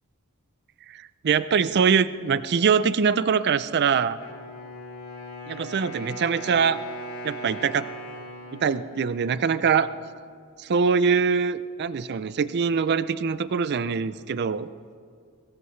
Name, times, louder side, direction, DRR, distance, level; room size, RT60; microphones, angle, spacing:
voice 1, 0.9-4.2 5.5-6.8 7.2-7.9 8.6-9.9 10.6-14.7, right 6 dB, 50° right, 14 dB, 0.4 m, -23 dB
Wind instrument woodwind instrument, 4.2-10.1, equal, 85° left, 3.6 m, -39 dB
22.5 x 19.0 x 3.2 m, 2.3 s
head